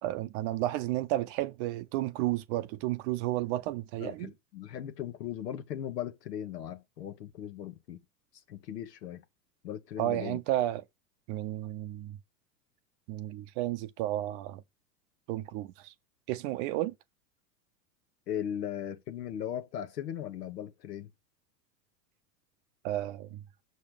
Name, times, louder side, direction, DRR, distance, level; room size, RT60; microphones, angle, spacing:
voice 1, 0.0-4.3 10.0-10.8 11.3-12.2 13.1-14.6 15.3-15.9 16.3-16.9 22.8-23.4, right 15 dB, 45° right, 0.7 m, -32 dB
voice 2, 4.0-8.0 8.5-9.2 9.6-10.4 18.3-21.1, left 10 dB, 75° left, 1.3 m, -38 dB
6.5 x 5.3 x 5.0 m
hypercardioid pair, 100°, 49 cm